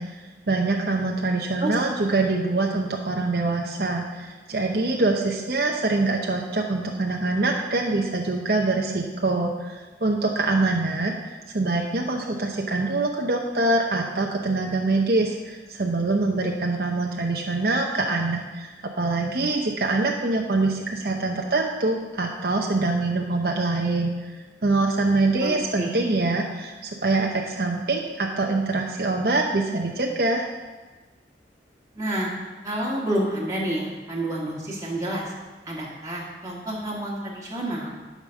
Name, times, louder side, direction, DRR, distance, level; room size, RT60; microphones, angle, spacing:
voice 1, 0.0-18.7 19.0-24.4 24.6-30.5, right 2 dB, 60° right, 0 dB, 0.8 m, -24 dB
voice 2, 25.4-26.1 31.9-32.3 32.6-35.3 35.6-37.9, right 1 dB, 20° right, -6 dB, 1.9 m, -29 dB
12.0 x 5.3 x 6.4 m, 1.3 s
head